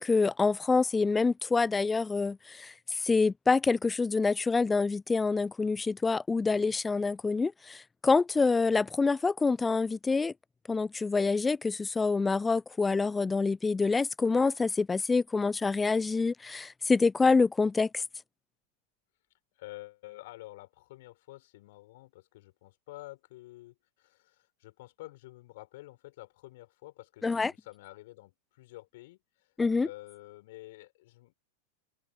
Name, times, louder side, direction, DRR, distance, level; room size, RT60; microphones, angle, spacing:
voice 1, 0.0-10.3 10.7-18.0 27.2-27.5 29.6-29.9, left 4 dB, 10° left, 0.7 m, -26 dB
voice 2, 19.5-29.5 29.8-31.3, left 18 dB, 50° left, 6.9 m, -49 dB
figure-of-eight pair, 90°, 0 cm